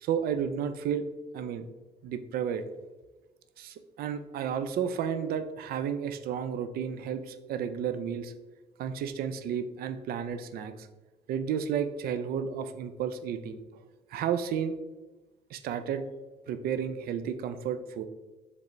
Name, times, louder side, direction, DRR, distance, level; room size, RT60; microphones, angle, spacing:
voice 1, 0.0-1.1 1.3-1.7 2.0-2.6 3.6-8.3 8.8-10.9 11.3-13.8 14.1-14.8 15.5-16.0 16.5-18.0, right 8 dB, 65° right, 10 dB, 0.4 m, -32 dB
4.8 x 3.4 x 3.1 m, 1.2 s
cardioid pair, 110°, 17 cm